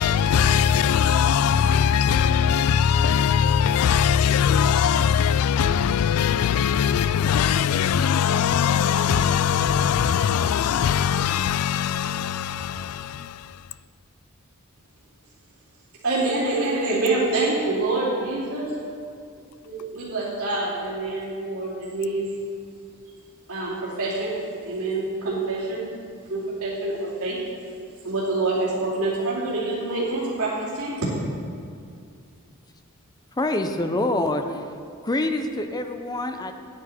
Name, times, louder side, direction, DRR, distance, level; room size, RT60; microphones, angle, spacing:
voice 1, 0.0-13.7, left 8 dB, 85° left, 0.3 m, -21 dB
voice 2, 16.0-18.7 19.6-22.2 23.5-24.4 24.6-25.9 26.3-27.4 28.0-31.1, right 2 dB, 75° right, 2.6 m, -26 dB
voice 3, 33.4-34.7 35.0-36.5, left 2 dB, 20° left, 0.5 m, -26 dB
10.0 x 9.4 x 4.2 m
head